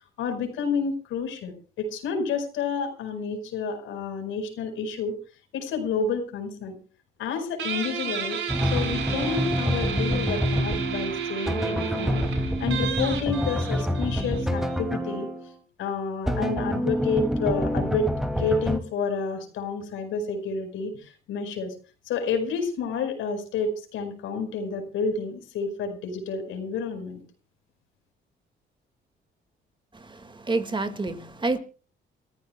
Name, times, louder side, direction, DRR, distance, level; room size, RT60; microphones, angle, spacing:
voice 1, 0.2-5.2 5.5-6.8 7.2-15.3 15.8-18.1 18.4-21.7 22.0-27.2, left 5 dB, 90° left, 5.0 m, -30 dB
Guitar, 7.6-14.8, right 7 dB, 80° right, 5.0 m, -32 dB
sound 1, 8.5-15.5 16.3-18.8, equal, ahead, 2.6 m, -27 dB
voice 2, 29.9-31.6, right 3 dB, 25° right, 2.1 m, -29 dB
29.0 x 14.5 x 2.3 m
cardioid pair, 90°, 20 cm